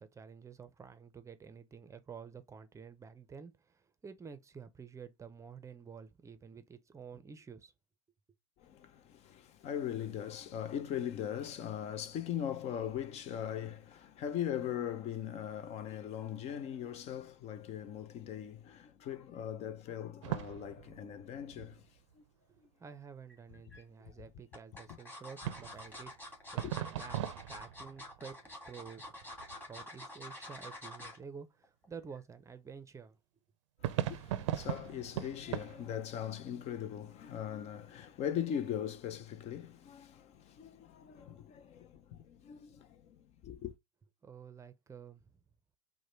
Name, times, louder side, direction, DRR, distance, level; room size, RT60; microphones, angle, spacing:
voice 1, 0.0-7.7 22.5-27.2 27.5-29.2 29.6-33.2 44.2-45.3, right 6 dB, 20° right, 0.6 m, -50 dB
voice 2, 8.6-21.8 22.2-22.3 26.6-26.7 33.8-43.7, left 9 dB, 45° left, 0.6 m, -40 dB
sound 1, 20.2-22.1 25.4-28.5 28.9-29.9 33.8-35.9, right 12 dB, 80° right, 0.5 m, -39 dB
sound 2, 23.3-23.8 24.5-31.2 31.6-31.9 32.2-32.3, left 1 dB, 15° left, 1.9 m, -48 dB
4.8 x 2.2 x 4.3 m
hypercardioid pair, 95°, 15 cm